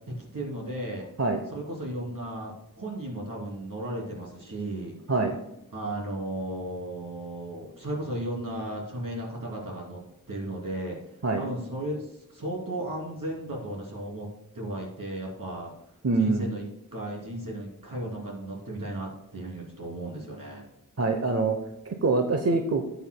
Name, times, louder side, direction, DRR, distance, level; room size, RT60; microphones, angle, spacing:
voice 1, 0.1-1.1 1.5-4.9 5.7-10.0 10.3-11.0 11.3-14.3 14.5-15.7 16.2-16.6 16.9-20.6, right 1 dB, 75° right, -2 dB, 3.0 m, -35 dB
voice 2, 16.0-16.5 21.0-21.6 21.8-22.8, right 3 dB, 50° right, 5 dB, 0.9 m, -24 dB
13.0 x 8.1 x 2.2 m, 0.90 s
wide cardioid pair, 45°, 33 cm